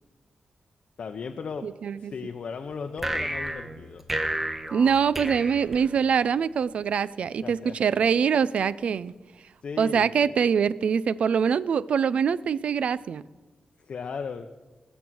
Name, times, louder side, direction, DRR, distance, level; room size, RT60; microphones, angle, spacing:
voice 1, 1.0-1.7 2.0-4.0 7.4-7.8 9.6-10.4 13.8-14.5, left 5 dB, 60° left, 0.7 m, -36 dB
voice 2, 1.6-2.1 4.7-9.1 9.8-13.2, right 7 dB, 70° right, 0.4 m, -24 dB
sound 1, 3.0-6.4, right 1 dB, 15° right, 1.0 m, -32 dB
20.0 x 7.1 x 6.1 m
wide cardioid pair, 140°, 2 cm